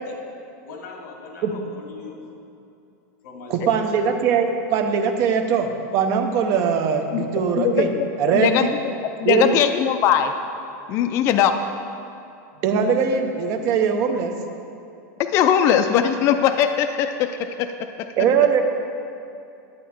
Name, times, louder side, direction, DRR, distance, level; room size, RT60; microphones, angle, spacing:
voice 1, 0.6-2.2 3.2-3.8, left 4 dB, 65° left, 0 dB, 2.4 m, -40 dB
voice 2, 3.5-7.9 8.2-8.7 9.2-9.6 12.6-14.3 18.2-18.6, right 6 dB, 35° right, 5 dB, 0.8 m, -21 dB
voice 3, 7.6-8.1 8.3-8.7 9.0-10.3 10.9-11.6 15.2-17.7, left 9 dB, 30° left, 7 dB, 0.4 m, -20 dB
11.5 x 8.0 x 4.3 m, 2.6 s
supercardioid pair, 165°, 9 cm